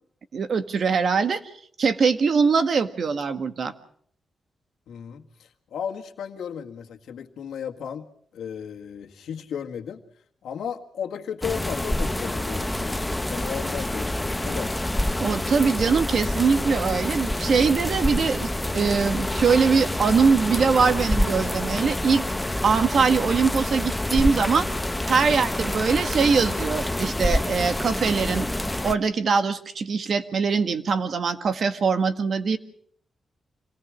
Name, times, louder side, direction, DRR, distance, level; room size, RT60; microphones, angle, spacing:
voice 1, 0.3-1.4 1.8-3.7 15.2-22.2 22.6-24.7 25.1-28.5 28.8-32.6, right 5 dB, 60° right, 9 dB, 1.7 m, -22 dB
voice 2, 4.9-8.1 8.3-10.0 10.4-14.9 25.2-25.6, left 8 dB, 90° left, 3 dB, 1.8 m, -35 dB
sound 1, 11.4-28.9, left 1 dB, 10° left, 0.8 m, -27 dB
27.0 x 18.5 x 6.3 m, 0.62 s
cardioid pair, 95°, 0 cm